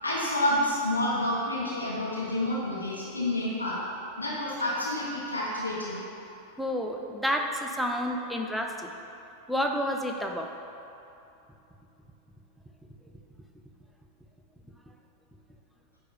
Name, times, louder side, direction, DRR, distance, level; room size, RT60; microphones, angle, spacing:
voice 1, 0.0-3.8 4.2-6.0, left 1 dB, 80° left, -7 dB, 1.3 m, -29 dB
voice 2, 6.6-8.9 9.5-10.5, equal, ahead, 2 dB, 0.6 m, -30 dB
9.3 x 3.4 x 5.2 m, 2.8 s
figure-of-eight pair, 90°, 0 cm